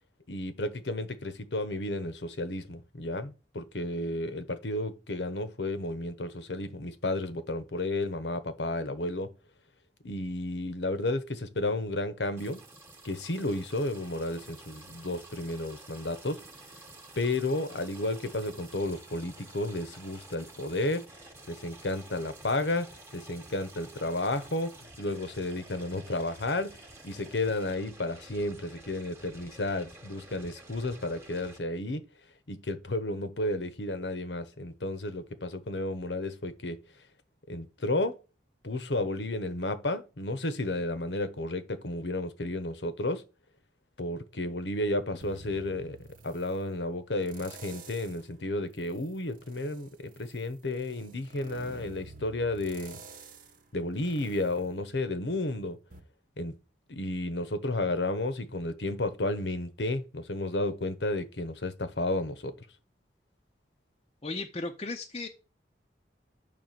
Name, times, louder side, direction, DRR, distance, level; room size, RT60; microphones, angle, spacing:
voice 1, 0.3-9.3 10.0-12.6 13.0-16.4 17.2-21.1 21.5-32.0 32.5-36.8 37.5-38.2 38.6-43.2 44.0-46.0 46.2-53.0 53.7-55.8 56.4-56.6 56.9-62.5, left 2 dB, 80° left, 1.1 m, -32 dB
sound 1, 12.4-31.6, right 2 dB, 15° right, 1.2 m, -51 dB
sound 2, 45.2-46.6 47.2-48.3 48.8-55.5 55.9-56.0, right 3 dB, 50° right, 1.0 m, -50 dB
voice 2, 64.2-65.3, left 3 dB, 35° left, 0.6 m, -35 dB
8.8 x 3.4 x 6.7 m
head